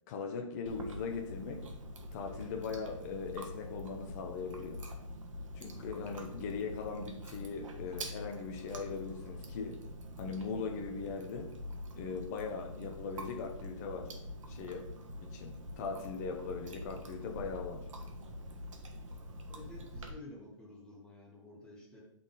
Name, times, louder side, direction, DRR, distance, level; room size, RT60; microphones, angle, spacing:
voice 1, 0.1-1.7 2.1-4.8 5.5-9.8 10.2-11.6 12.0-14.1 14.5-14.9 15.2-17.8, left 5 dB, 30° left, 0.7 m, -40 dB
Chewing mastication, 0.7-20.1, equal, 70° right, 1.3 m, -45 dB
voice 2, 19.5-22.0, left 2 dB, 5° left, 1.2 m, -51 dB
8.6 x 4.1 x 3.8 m
hypercardioid pair, 160°, 17 cm